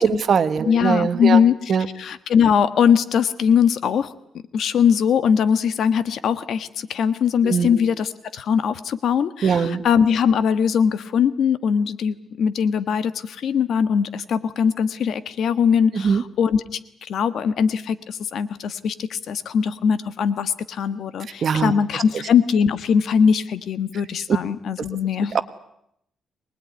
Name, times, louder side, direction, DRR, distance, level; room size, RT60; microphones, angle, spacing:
voice 1, 0.0-1.4 1.7-1.9 7.4-7.8 9.4-9.8 15.9-16.2 21.4-21.7 25.3-25.4, right 6 dB, 50° right, 10 dB, 1.5 m, -21 dB
voice 2, 0.6-1.6 2.0-4.1 4.5-25.3, left 7 dB, 65° left, 12 dB, 1.4 m, -21 dB
24.0 x 20.5 x 9.6 m, 0.77 s
cardioid pair, 130°, 0 cm